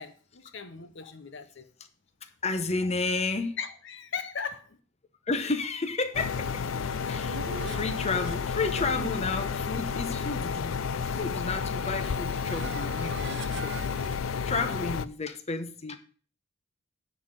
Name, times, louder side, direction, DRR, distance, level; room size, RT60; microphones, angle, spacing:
voice 1, 0.0-1.7 3.6-4.8, left 6 dB, 65° left, 0.9 m, -38 dB
voice 2, 2.4-3.5 5.3-6.6 7.0-10.7 11.0-14.1 14.5-16.0, left 3 dB, 35° left, 0.9 m, -32 dB
sound 1, 6.1-15.1, left 6 dB, 85° left, 0.5 m, -31 dB
sound 2, 6.7-14.2, right 7 dB, 60° right, 0.4 m, -45 dB
10.0 x 4.2 x 7.6 m
head